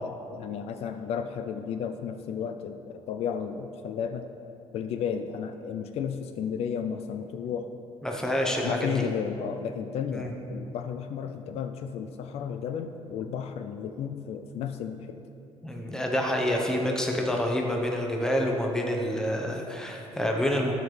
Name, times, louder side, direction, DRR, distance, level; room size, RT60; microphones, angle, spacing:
voice 1, 0.0-4.3 4.7-7.7 8.6-15.2, left 7 dB, 65° left, 7 dB, 0.4 m, -33 dB
voice 2, 8.0-9.0 10.1-10.3 15.6-20.7, equal, 5° left, 0 dB, 0.8 m, -27 dB
13.0 x 5.0 x 3.3 m, 2.8 s
cardioid pair, 150°, 11 cm